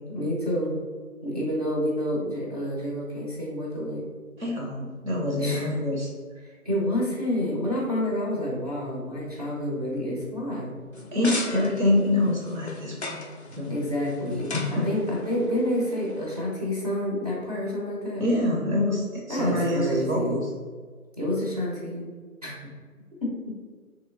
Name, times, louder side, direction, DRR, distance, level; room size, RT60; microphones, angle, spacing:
voice 1, 0.1-0.7 1.2-4.0 5.4-5.6 6.4-10.8 13.7-18.2 19.3-20.4 21.2-22.1 22.4-22.5 23.2-23.5, left 1 dB, 25° right, -4 dB, 0.7 m, -28 dB
voice 2, 4.4-6.1 11.1-13.2 13.6-13.7 14.5-14.9 18.2-20.4, left 1 dB, 65° right, -2 dB, 0.9 m, -25 dB
sound 1, 10.9-16.4, left 2 dB, 50° left, 0.4 m, -38 dB
3.0 x 2.9 x 3.7 m, 1.5 s
figure-of-eight pair, 160°, 45 cm